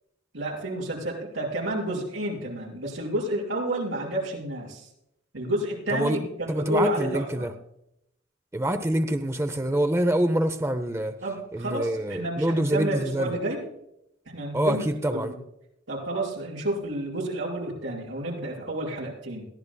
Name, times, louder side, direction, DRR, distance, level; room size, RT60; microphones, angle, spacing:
voice 1, 0.3-4.9 5.3-7.5 11.2-13.7 14.3-14.8 15.1-15.4 15.9-19.4, right 1 dB, 85° right, -2 dB, 5.4 m, -30 dB
voice 2, 6.5-7.5 8.5-11.1 11.5-13.3 14.5-15.3, right 1 dB, 15° right, 9 dB, 0.6 m, -25 dB
22.0 x 15.0 x 2.3 m, 0.80 s
head